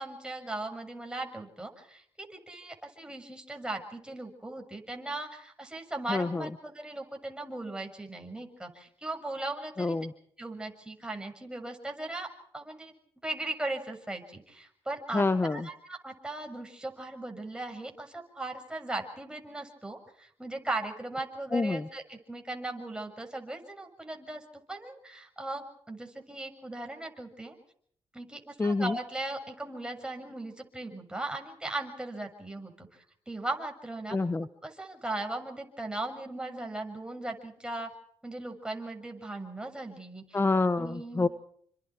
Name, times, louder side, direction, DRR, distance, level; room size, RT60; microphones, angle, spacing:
voice 1, 0.0-10.0 10.4-12.9 13.2-15.2 15.5-24.4 24.7-27.6 28.1-34.2 34.6-37.9 38.2-40.4 40.8-41.3, right 2 dB, 10° right, 3 dB, 6.8 m, -38 dB
voice 2, 6.1-6.5 9.8-10.1 15.1-15.7 21.5-21.9 28.6-29.0 34.1-34.5 40.3-41.3, left 3 dB, 25° left, 12 dB, 1.1 m, -27 dB
29.5 x 25.0 x 4.6 m, 0.63 s
cardioid pair, 70°, 10 cm